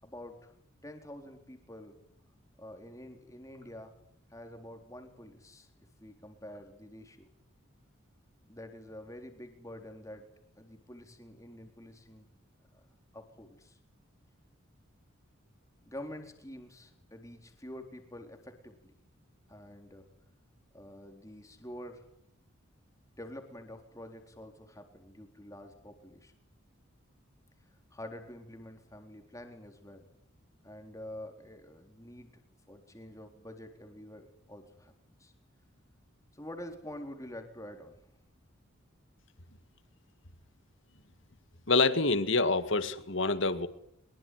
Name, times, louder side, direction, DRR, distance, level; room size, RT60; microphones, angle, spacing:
voice 1, 0.0-0.5 0.8-2.0 2.6-3.9 4.3-5.7 6.0-7.3 8.5-10.3 10.6-12.3 12.7-12.8 13.1-13.8 15.9-18.9 19.5-20.0 20.7-22.0 23.2-26.3 27.9-30.1 30.6-32.3 32.7-35.3 36.3-38.0, left 1 dB, 15° left, 5 dB, 4.0 m, -47 dB
voice 2, 41.7-43.7, left 3 dB, 60° left, 12 dB, 2.0 m, -26 dB
24.0 x 22.5 x 9.5 m, 0.71 s
head